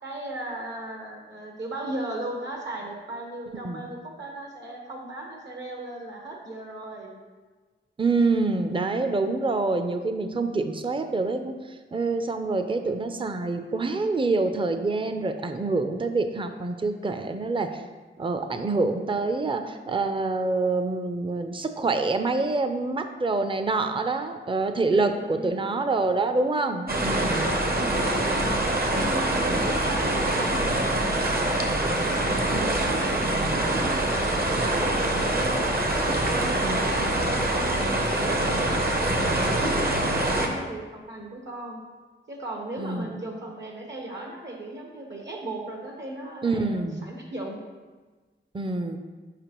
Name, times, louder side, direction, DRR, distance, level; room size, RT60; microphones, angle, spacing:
voice 1, 0.0-7.2 24.9-25.6 26.8-27.3 27.6-28.6 28.9-35.7 36.1-41.8 42.3-47.6, right 1 dB, 65° right, 0 dB, 1.2 m, -37 dB
voice 2, 8.0-11.5 11.9-17.8 18.2-27.5 29.4-29.6 32.4-32.7 36.6-37.0 42.8-43.1 46.4-47.1 48.5-49.0, right 3 dB, 25° right, 7 dB, 0.5 m, -26 dB
sound 1, 26.9-40.5, right 1 dB, 50° right, 0.9 m, -25 dB
sound 2, 34.6-40.3, left 4 dB, 65° left, 0.6 m, -39 dB
6.7 x 5.2 x 3.0 m, 1.3 s
cardioid pair, 50°, 20 cm